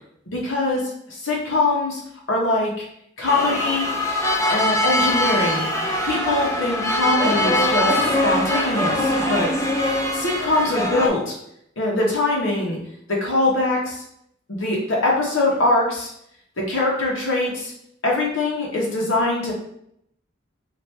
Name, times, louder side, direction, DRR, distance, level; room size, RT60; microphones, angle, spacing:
voice 1, 0.3-2.0 2.3-2.8 3.2-3.9 4.5-5.6 6.0-9.5 10.1-11.3 11.8-12.8 13.1-14.0 14.5-16.1 16.6-17.7 18.0-19.5, left 2 dB, 80° left, -3 dB, 1.0 m, -22 dB
sound 1, 3.3-11.1, left 1 dB, 15° left, 0.4 m, -22 dB
4.4 x 2.5 x 3.2 m, 0.73 s
head